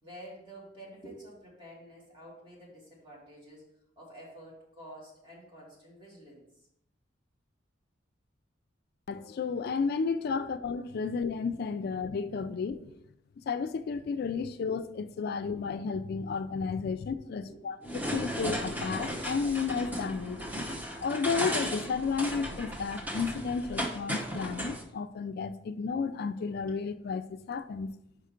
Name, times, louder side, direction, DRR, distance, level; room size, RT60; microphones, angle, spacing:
voice 1, 0.0-6.5 10.3-10.5 11.8-11.9 16.9-17.0 17.3-17.9 26.6-26.7 27.7-27.8, right 1 dB, 25° right, 2.7 m, -50 dB
voice 2, 9.1-12.9 13.5-17.8 18.1-20.4 21.0-27.9, left 5 dB, 55° left, 0.3 m, -32 dB
sound 1, 17.8-24.8, equal, 10° right, 0.9 m, -35 dB
5.5 x 5.0 x 5.0 m
head